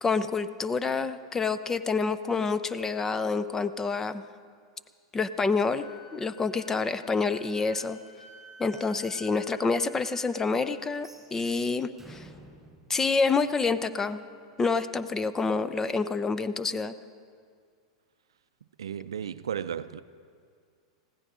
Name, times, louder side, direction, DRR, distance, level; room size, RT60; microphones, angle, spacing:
voice 1, 0.0-4.2 5.1-5.8 6.1-8.0 8.6-12.3 12.9-14.2 14.6-16.9, left 4 dB, 15° left, 0.6 m, -28 dB
Wind instrument woodwind instrument, 5.8-10.9, left 2 dB, 65° left, 2.6 m, -52 dB
sound 1, 10.9-14.0, right 2 dB, 10° right, 4.4 m, -53 dB
voice 2, 18.8-20.0, right 8 dB, 90° right, 0.5 m, -34 dB
20.0 x 15.5 x 3.7 m
hypercardioid pair, 105°, 2 cm